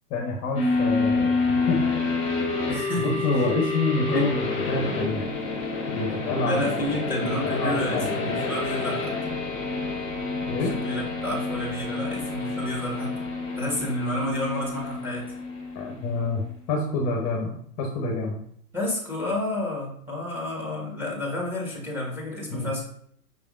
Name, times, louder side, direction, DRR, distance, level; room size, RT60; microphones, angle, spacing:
voice 1, 0.1-1.8 3.0-5.3 5.9-6.8 7.4-8.4 10.4-10.8 15.7-16.4 16.7-18.4 22.5-22.7, left 3 dB, 30° left, 0 dB, 0.7 m, -27 dB
sound 1, 0.5-16.3, left 3 dB, 15° left, 1.4 m, -28 dB
voice 2, 2.7-3.0 3.3-3.4 4.1-4.3 6.4-9.1 10.6-13.1 13.6-15.3 18.7-22.9, left 1 dB, 5° right, -2 dB, 1.4 m, -30 dB
5.4 x 3.3 x 2.5 m, 0.65 s
hypercardioid pair, 110°, 47 cm